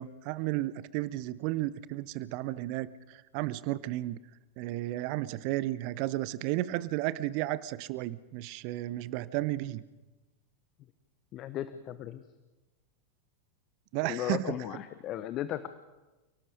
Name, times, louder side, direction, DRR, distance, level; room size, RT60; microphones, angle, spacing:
voice 1, 0.0-4.2 4.6-9.8 13.9-14.5, right 16 dB, 45° right, 18 dB, 0.8 m, -33 dB
voice 2, 11.3-12.2 14.0-15.7, left 12 dB, 35° left, 12 dB, 1.1 m, -36 dB
30.0 x 18.5 x 5.3 m, 1.1 s
figure-of-eight pair, 90°, 0 cm